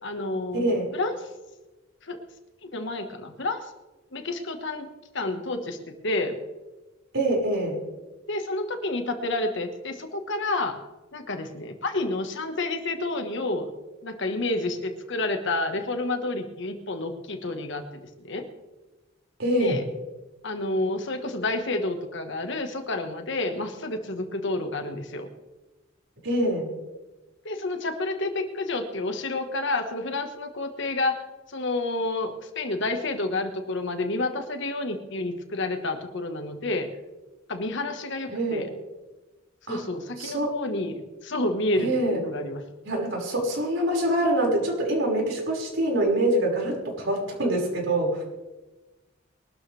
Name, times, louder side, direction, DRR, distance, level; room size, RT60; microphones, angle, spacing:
voice 1, 0.0-0.7 0.9-1.1 2.0-2.2 2.6-3.7 4.1-4.9 5.1-5.8 6.0-6.4 8.3-10.8 11.1-13.7 14.0-17.8 18.2-18.5 19.6-19.8 20.4-25.3 27.4-31.2 31.5-36.9 37.5-38.7 39.7-42.6, left 2 dB, 65° left, 6 dB, 1.7 m, -29 dB
voice 2, 0.5-0.9 7.1-7.8 19.4-19.8 26.2-26.7 38.3-38.7 39.7-39.8 40.2-40.6 41.8-42.2 42.8-48.2, right 1 dB, 70° right, -2 dB, 6.0 m, -25 dB
22.5 x 12.5 x 3.5 m, 1.1 s
head